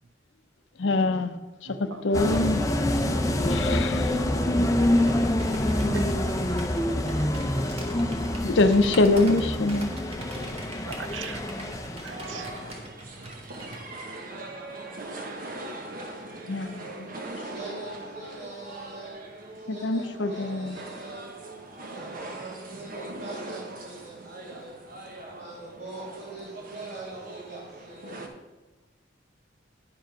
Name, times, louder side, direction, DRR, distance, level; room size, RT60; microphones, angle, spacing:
voice 1, 0.8-2.7 3.4-4.2 8.4-9.9 16.5-17.2 19.7-20.8, left 2 dB, 70° left, 10 dB, 0.6 m, -24 dB
voice 2, 1.7-2.1 5.9-6.3 10.4-11.5 12.0-12.5 16.5-16.7, right 5 dB, 85° right, 11 dB, 0.6 m, -41 dB
sound 1, 2.1-12.8, left 1 dB, 20° left, 0.6 m, -26 dB
Computer keyboard, 4.8-13.9, right 1 dB, 30° right, 1.3 m, -44 dB
sound 2, 11.0-28.3, right 2 dB, 50° right, 1.1 m, -41 dB
voice 3, 17.4-19.2 19.5-21.3 21.8-24.8 25.3-28.2, right 2 dB, 65° right, -8 dB, 2.5 m, -43 dB
10.5 x 5.2 x 5.2 m, 1.1 s
head